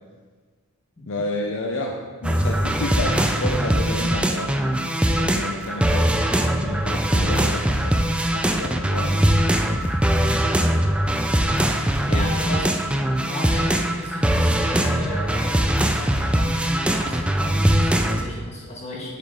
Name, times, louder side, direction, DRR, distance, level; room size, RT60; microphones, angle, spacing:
voice 1, 1.1-4.6 5.1-9.9 11.6-12.3, left 2 dB, 60° left, 1 dB, 0.6 m, -31 dB
sound 1, 2.2-18.2, right 1 dB, 5° right, 0.3 m, -21 dB
sound 2, 6.8-7.9 9.2-10.8 12.2-13.2, right 1 dB, 45° right, 1.0 m, -39 dB
voice 2, 12.1-12.7 13.2-19.2, left 1 dB, 30° left, -3 dB, 1.6 m, -34 dB
7.4 x 7.2 x 3.7 m, 1.5 s
head